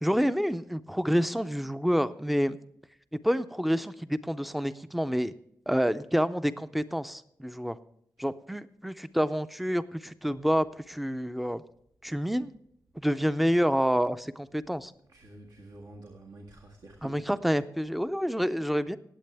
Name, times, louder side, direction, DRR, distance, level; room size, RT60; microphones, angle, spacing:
voice 1, 0.0-2.6 3.2-5.3 5.7-7.8 8.2-11.6 12.0-12.5 13.0-14.9 17.0-19.0, equal, ahead, 13 dB, 0.4 m, -28 dB
voice 2, 15.1-17.2, right 2 dB, 90° right, -2 dB, 1.8 m, -48 dB
19.0 x 8.3 x 3.4 m, 0.71 s
wide cardioid pair, 175°, 7 cm